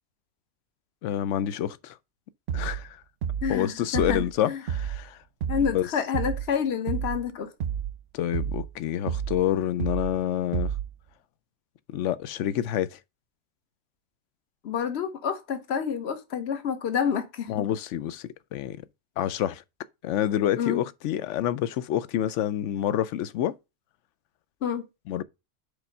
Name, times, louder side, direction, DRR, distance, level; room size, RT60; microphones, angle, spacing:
voice 1, 1.0-2.0 2.5-3.0 3.5-5.2 5.7-5.9 8.1-10.7 11.9-13.0 17.5-18.8 19.2-19.6 20.0-23.6 25.1-25.2, left 11 dB, 85° left, 0.9 m, -28 dB
sound 1, 2.5-2.9 3.2-3.6 3.9-4.3 4.7-5.0 5.4-5.8 6.1-6.5 6.9-7.2 7.6-8.0 8.3-8.7 9.1-9.4 9.8-10.2 10.5-10.9, right 8 dB, 65° right, 0.8 m, -30 dB
voice 2, 3.4-4.6 5.5-7.5 14.6-17.5 20.6-20.8 24.6-24.8, left 7 dB, 65° left, 1.2 m, -28 dB
5.1 x 4.5 x 5.2 m
omnidirectional pair, 1.2 m